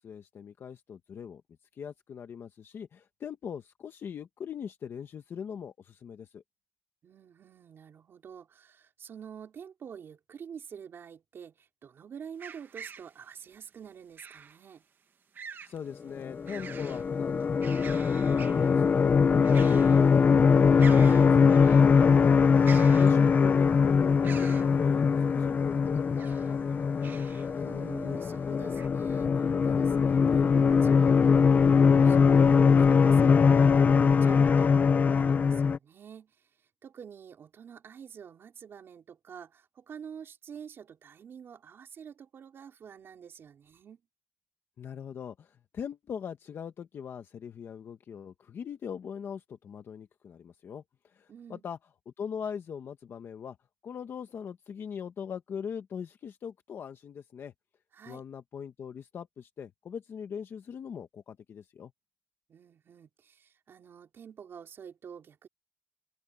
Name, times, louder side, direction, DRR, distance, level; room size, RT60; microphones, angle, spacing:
voice 1, 0.0-1.4 1.7-6.4 15.6-22.4 23.0-26.6 44.8-51.8 52.2-53.6 53.8-57.5 58.1-61.9, left 7 dB, 85° left, 1.1 m, -41 dB
voice 2, 7.0-14.8 22.5-22.9 27.4-44.0 51.3-51.6 57.9-58.2 62.5-65.5, right 7 dB, 80° right, 4.2 m, -48 dB
sound 1, 12.4-13.1 14.2-14.6 15.3-15.8 16.2-17.0 17.4-18.7 19.4-20.1 20.4-20.5 20.8-21.8 22.6-23.5 24.2-24.7 26.0-26.5 27.0-27.5 28.0-28.1 28.7-28.9, right 6 dB, 60° right, 1.3 m, -45 dB
sound 2, 16.3-35.8, left 6 dB, 45° left, 0.5 m, -22 dB
wide cardioid pair, 180°, 4 cm